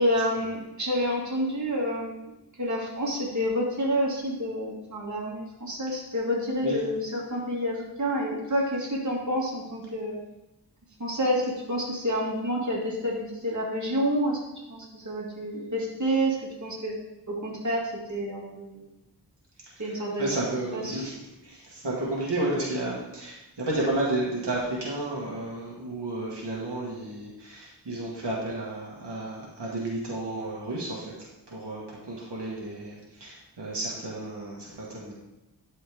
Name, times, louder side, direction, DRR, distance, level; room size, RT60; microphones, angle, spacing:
voice 1, 0.0-2.2 2.6-10.2 11.0-14.4 14.7-16.9 17.3-18.8 19.8-20.4 20.7-21.0, equal, 45° right, -4 dB, 2.2 m, -28 dB
voice 2, 20.2-21.1 21.4-31.1 31.5-35.1, right 2 dB, 90° right, -5 dB, 1.8 m, -32 dB
11.5 x 4.3 x 3.5 m, 0.93 s
wide cardioid pair, 60°, 40 cm